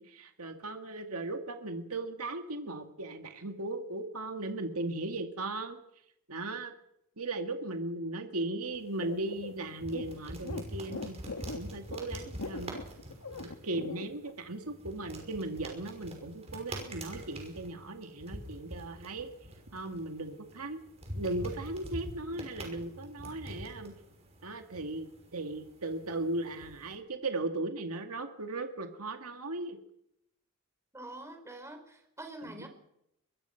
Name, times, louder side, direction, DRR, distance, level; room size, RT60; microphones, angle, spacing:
voice 1, 0.0-5.8 6.3-6.7 7.2-11.2 11.5-12.7 13.4-19.3 19.7-20.8 21.1-23.9 24.4-29.8 32.4-32.7, right 2 dB, 70° right, 6 dB, 2.2 m, -37 dB
Sacudida perro, 8.7-26.9, right 1 dB, 30° right, 5.7 m, -45 dB
sound 1, 9.0-14.3, left 3 dB, 90° left, 1.4 m, -41 dB
voice 2, 30.9-32.7, right 1 dB, 15° right, 5 dB, 4.7 m, -45 dB
24.0 x 21.5 x 5.9 m, 0.78 s
head